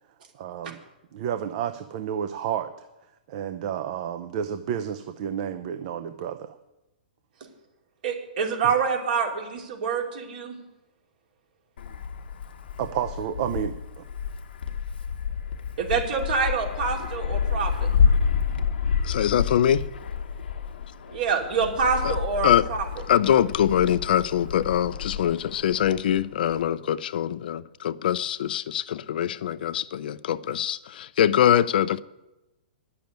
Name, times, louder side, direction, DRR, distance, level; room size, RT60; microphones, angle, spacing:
voice 1, 0.3-0.8 1.1-2.9 3.3-6.6 8.6-8.7 12.8-14.0, right 9 dB, 45° right, 0.6 m, -31 dB
voice 2, 8.0-10.6 15.8-17.9 21.1-22.8, right 5 dB, 65° right, 2.9 m, -26 dB
Wind, 11.8-26.7, left 6 dB, 80° left, 1.1 m, -29 dB
voice 3, 19.0-19.9 22.0-22.1 22.4-22.7 23.1-32.0, left 10 dB, 65° left, 0.5 m, -23 dB
10.5 x 6.9 x 9.2 m
hypercardioid pair, 145°, 5 cm